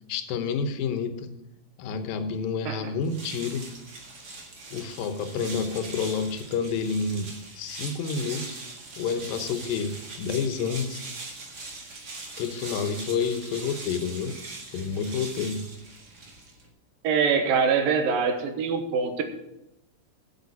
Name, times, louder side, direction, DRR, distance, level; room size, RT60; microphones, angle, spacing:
voice 1, 0.1-1.3 1.8-3.7 4.7-8.6 9.0-11.0 12.4-14.4 14.7-15.7, left 5 dB, 80° left, 9 dB, 2.7 m, -29 dB
sound 1, 3.0-16.7, right 3 dB, 40° right, 1.5 m, -41 dB
voice 2, 17.0-19.2, right 5 dB, 85° right, 6 dB, 3.0 m, -24 dB
8.2 x 7.3 x 8.5 m, 0.87 s
omnidirectional pair, 4.0 m